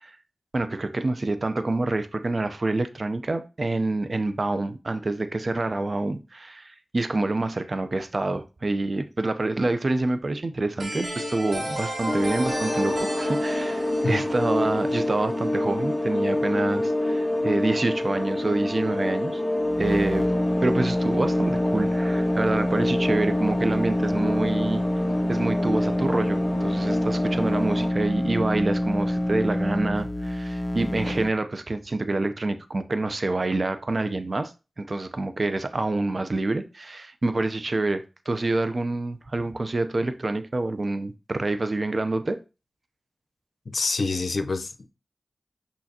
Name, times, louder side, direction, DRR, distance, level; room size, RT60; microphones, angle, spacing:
voice 1, 0.5-19.4 19.8-20.3 20.6-24.8 25.3-34.5 34.8-42.4, right 2 dB, 55° right, 0.6 m, -27 dB
sound 1, 10.8-15.4, equal, 80° right, 2.8 m, -33 dB
sound 2, 12.1-27.9, left 1 dB, 5° left, 1.9 m, -28 dB
sound 3, 19.6-31.3, left 1 dB, 35° left, 0.7 m, -26 dB
voice 2, 43.7-44.9, left 3 dB, 75° left, 0.7 m, -27 dB
6.4 x 5.6 x 2.8 m
cardioid pair, 40°, 0 cm